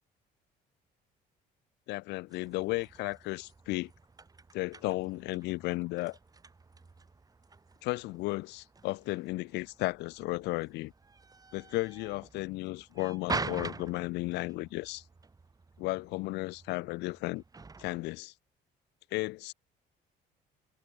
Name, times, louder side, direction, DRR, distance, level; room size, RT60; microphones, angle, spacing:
voice 1, 1.9-3.9 4.5-6.2 7.8-10.9 11.5-15.0 15.8-17.4 17.8-18.3 19.1-19.5, left 21 dB, 90° left, 1.0 m, -34 dB
sound 1, 2.3-18.2, right 4 dB, 20° right, 6.2 m, -45 dB
cardioid pair, 110°, 17 cm